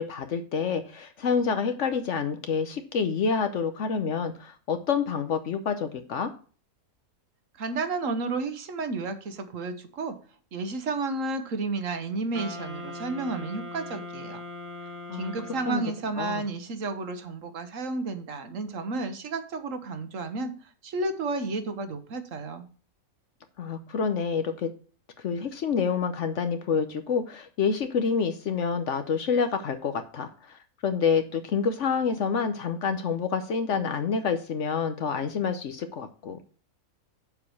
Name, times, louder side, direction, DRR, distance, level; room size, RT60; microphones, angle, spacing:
voice 1, 0.0-6.3 15.1-15.3 15.7-15.8 16.2-16.4 23.6-24.7 25.2-36.4, left 6 dB, 60° left, 8 dB, 1.0 m, -28 dB
voice 2, 7.6-10.1 10.5-14.4 15.1-22.6, right 3 dB, 65° right, 9 dB, 1.3 m, -32 dB
Wind instrument woodwind instrument, 12.3-16.2, left 2 dB, 80° right, 2.4 m, -40 dB
7.0 x 4.8 x 6.9 m, 0.41 s
omnidirectional pair, 1.5 m